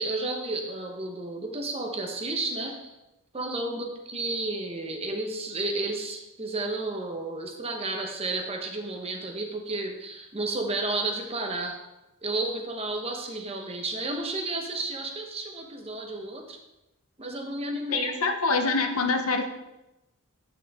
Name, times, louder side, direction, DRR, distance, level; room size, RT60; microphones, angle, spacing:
voice 1, 0.0-3.0 3.3-11.8 12.2-16.6 17.2-18.2, right 2 dB, 25° right, 3 dB, 1.0 m, -32 dB
voice 2, 17.7-19.5, left 4 dB, 75° left, 5 dB, 0.9 m, -26 dB
9.6 x 6.0 x 3.6 m, 0.96 s
head